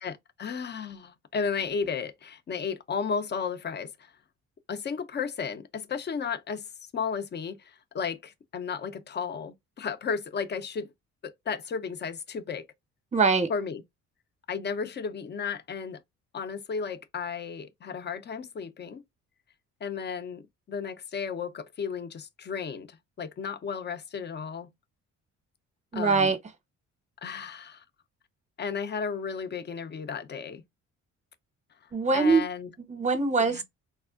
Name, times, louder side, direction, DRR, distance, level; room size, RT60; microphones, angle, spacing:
voice 1, 0.0-4.1 4.7-6.7 6.9-10.9 11.2-12.7 13.5-13.8 14.5-16.0 16.3-19.0 19.8-24.7 25.9-26.3 27.2-27.8 28.6-30.6 32.1-32.7 33.4-33.6, left 6 dB, 35° left, 0.5 m, -34 dB
voice 2, 13.1-13.5 25.9-26.4 31.9-32.4 32.9-33.6, right 4 dB, 25° right, 0.7 m, -23 dB
3.4 x 2.0 x 2.3 m
cardioid pair, 90°, 30 cm